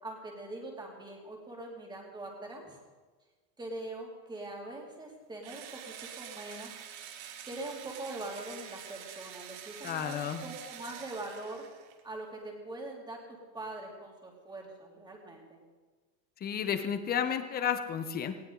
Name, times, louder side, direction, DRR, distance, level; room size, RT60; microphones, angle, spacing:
voice 1, 0.0-2.8 3.6-6.7 7.4-11.6 12.0-15.6, right 2 dB, 10° right, 0 dB, 2.7 m, -43 dB
Engine / Drill, 5.4-12.0, right 9 dB, 65° right, 2.1 m, -47 dB
voice 2, 9.8-10.4 16.4-18.4, left 8 dB, 20° left, 9 dB, 0.9 m, -32 dB
19.0 x 16.5 x 3.9 m, 1.3 s
supercardioid pair, 160°, 47 cm